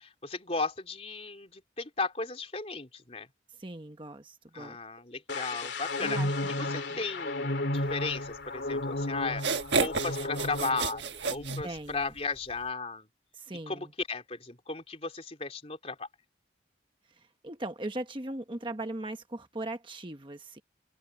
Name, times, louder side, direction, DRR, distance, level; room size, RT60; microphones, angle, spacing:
voice 1, 0.0-3.3 4.5-6.2 6.5-9.4 9.8-13.1 13.7-16.1, left 3 dB, 35° left, 3.6 m, -35 dB
voice 2, 3.6-4.8 6.0-6.3 6.9-7.0 11.6-12.1 13.3-13.9 17.1-20.6, right 2 dB, 25° right, 1.1 m, -39 dB
sound 1, 5.3-11.0 11.3-11.6, left 2 dB, 65° left, 2.7 m, -33 dB
sound 2, 8.8-8.9 9.3-12.2, right 4 dB, 70° right, 1.4 m, -31 dB
open air
head